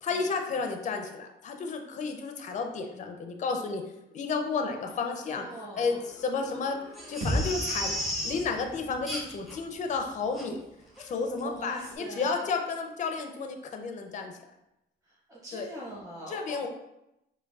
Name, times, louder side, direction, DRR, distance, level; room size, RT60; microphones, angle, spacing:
voice 1, 0.0-3.8 4.1-5.5 5.8-6.8 7.1-8.0 8.2-10.6 11.0-14.4 15.5-15.7 16.3-16.7, left 4 dB, 40° left, 5 dB, 0.4 m, -32 dB
voice 2, 4.8-6.0 11.4-12.5 15.0-16.7, right 1 dB, 15° right, -7 dB, 1.1 m, -42 dB
sound 1, 5.7-11.6, equal, 80° right, 1.2 m, -54 dB
Crying sobbing, 6.9-8.4 9.1-9.5 9.9-10.0 10.3-10.5 11.0-11.1 11.4-11.5, equal, ahead, 0.6 m, -34 dB
sound 2, 7.2-11.1, equal, 45° right, 1.1 m, -36 dB
4.5 x 2.1 x 2.3 m, 0.87 s
cardioid pair, 90°, 20 cm